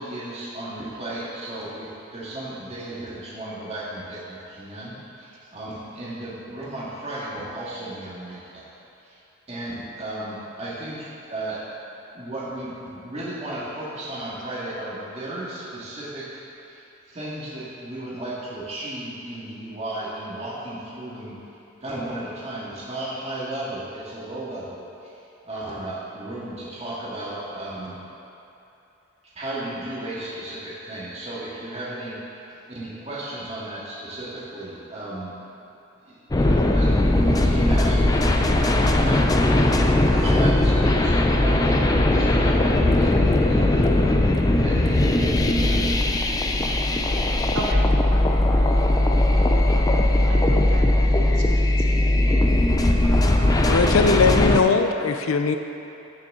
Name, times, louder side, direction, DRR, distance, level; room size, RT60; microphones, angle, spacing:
voice 1, 0.0-8.7 9.0-9.1 9.5-11.6 12.1-16.4 16.7-16.8 17.1-21.3 21.8-24.9 25.4-28.0 29.4-32.2 32.7-35.3 36.0-43.9 44.6-45.9, right 1 dB, 30° right, -8 dB, 2.0 m, -34 dB
sound 1, 36.3-54.6, left 1 dB, 15° left, 0.4 m, -19 dB
voice 2, 50.3-50.9 51.3-51.9 53.0-53.8, right 1 dB, 60° right, -1 dB, 0.9 m, -35 dB
voice 3, 53.6-55.6, left 4 dB, 85° left, 7 dB, 0.6 m, -20 dB
14.0 x 6.4 x 3.8 m, 2.9 s
head